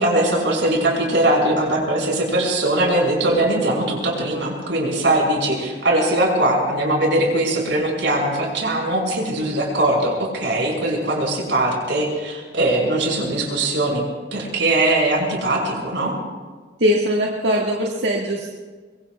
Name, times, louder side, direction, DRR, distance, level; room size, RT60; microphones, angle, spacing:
voice 1, 0.0-14.1 14.3-16.1, right 1 dB, 85° right, -1 dB, 6.1 m, -20 dB
voice 2, 16.8-18.5, equal, 70° right, -2 dB, 1.8 m, -21 dB
24.5 x 24.0 x 2.4 m, 1.4 s
head